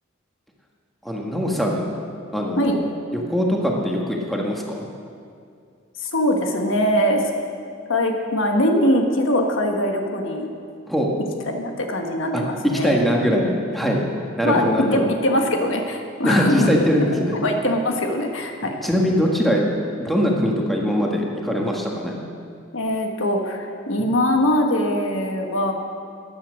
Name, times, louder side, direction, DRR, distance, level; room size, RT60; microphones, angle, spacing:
voice 1, 1.0-1.9 2.3-2.8 3.1-4.9 10.9-11.1 12.3-12.4 12.8-14.0 14.4-15.0 16.2-17.3 18.8-19.6 20.0-22.1 24.0-24.1, equal, ahead, -1 dB, 1.6 m, -21 dB
voice 2, 6.0-7.3 7.9-10.5 11.5-13.0 14.4-14.6 14.9-16.8 17.3-18.8 22.7-25.7, left 1 dB, 75° left, 3 dB, 1.4 m, -22 dB
14.5 x 10.0 x 6.4 m, 2.3 s
head